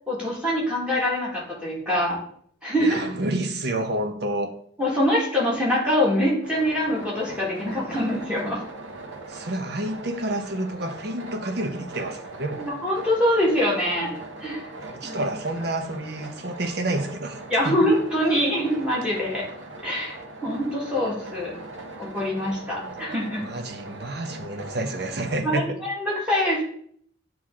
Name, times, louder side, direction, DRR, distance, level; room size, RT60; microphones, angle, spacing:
voice 1, 0.1-2.2 2.6-3.0 4.8-8.6 12.6-14.1 14.4-14.7 15.0-15.3 17.5-19.5 19.8-20.2 20.4-21.5 22.0-23.4 25.4-26.6, equal, 5° right, 1.9 m, -24 dB
voice 2, 2.8-4.5 7.9-8.0 9.3-12.7 14.8-17.4 17.6-17.8 18.3-18.4 22.8-23.0 23.4-25.7, right 1 dB, 60° right, 0.8 m, -29 dB
sound 1, 6.4-25.4, right 2 dB, 90° right, 1.2 m, -40 dB
9.2 x 3.1 x 3.6 m
head